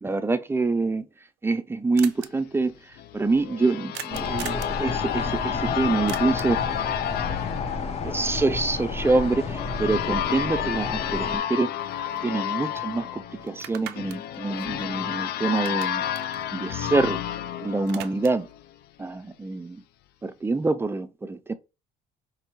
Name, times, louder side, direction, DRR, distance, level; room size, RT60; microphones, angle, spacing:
voice 1, 0.0-1.0 1.4-2.7 3.1-6.6 8.0-11.7 12.2-16.0 16.5-17.2 17.6-18.5 19.0-19.8 20.2-21.5, right 3 dB, 15° right, 0.4 m, -26 dB
sound 1, 1.0-1.1 1.3-1.4 1.6-1.7 2.0-2.3 3.9-4.8 6.1-6.6 10.8-10.9 11.3-12.5 12.8-12.9 13.5-15.2 15.5-17.4 17.6-18.5, right 13 dB, 85° right, 0.4 m, -41 dB
sound 2, 3.0-18.6, left 10 dB, 70° left, 0.4 m, -31 dB
sound 3, 4.1-11.4, left 4 dB, 40° left, 0.9 m, -31 dB
5.1 x 3.1 x 3.0 m
cardioid pair, 110°, 17 cm